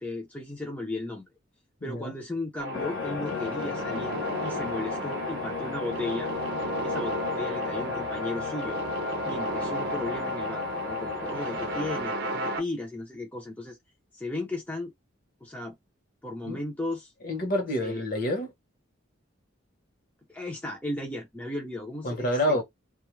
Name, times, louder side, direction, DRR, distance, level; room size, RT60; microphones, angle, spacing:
voice 1, 0.0-1.2 1.8-6.3 6.8-8.8 9.2-13.8 14.1-14.9 15.4-15.8 16.2-17.1 17.8-18.0 20.3-22.6, left 2 dB, 10° left, 0.5 m, -35 dB
voice 2, 1.8-2.1 16.4-16.6 17.2-18.5 22.0-22.6, left 1 dB, 45° left, 0.9 m, -28 dB
sound 1, 2.6-12.6, equal, 55° right, 0.7 m, -33 dB
sound 2, 2.7-12.0, left 6 dB, 85° left, 0.4 m, -36 dB
2.3 x 2.1 x 3.0 m
head